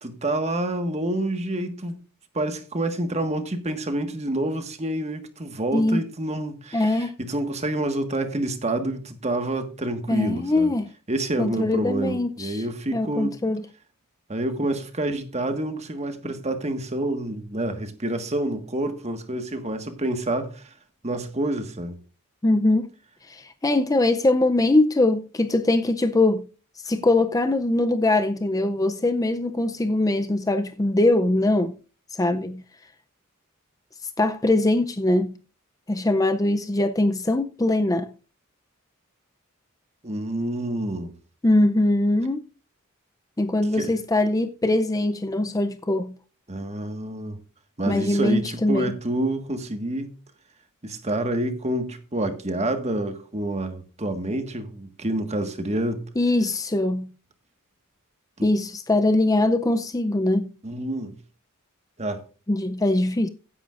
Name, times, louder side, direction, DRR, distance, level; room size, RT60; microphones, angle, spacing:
voice 1, 0.0-1.9 2.3-10.7 11.1-13.4 14.3-20.7 21.0-22.0 40.0-41.1 43.7-43.9 46.5-47.4 47.8-50.1 50.8-56.0 58.4-58.5 60.6-61.1 62.0-62.2, right 1 dB, 30° right, 1.5 m, -28 dB
voice 2, 5.7-6.0 6.7-7.1 10.1-10.9 11.4-12.6 12.9-13.6 22.4-22.9 23.3-26.5 26.8-31.8 32.1-32.6 34.2-35.4 35.9-38.1 41.4-42.5 43.4-46.2 47.9-48.9 56.2-57.1 58.4-60.5 62.5-63.3, left 2 dB, 15° left, 0.5 m, -22 dB
16.0 x 10.0 x 2.5 m
head